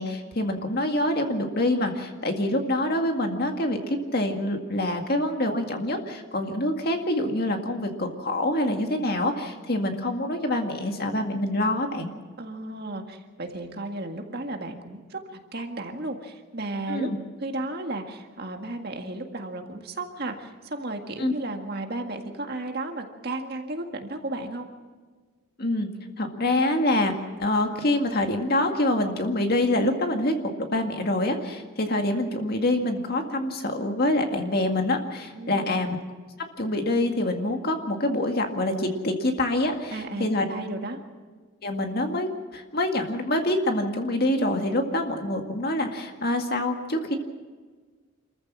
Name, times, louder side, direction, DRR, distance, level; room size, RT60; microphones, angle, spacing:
voice 1, 0.0-12.1 16.9-17.2 21.2-21.3 25.6-25.9 26.2-36.0 36.6-40.5 41.6-47.2, left 1 dB, 45° left, 4 dB, 2.0 m, -26 dB
voice 2, 12.4-17.1 17.4-24.7 35.4-35.8 39.9-41.0, right 2 dB, 50° right, 4 dB, 1.9 m, -34 dB
26.5 x 14.5 x 7.5 m, 1.4 s
head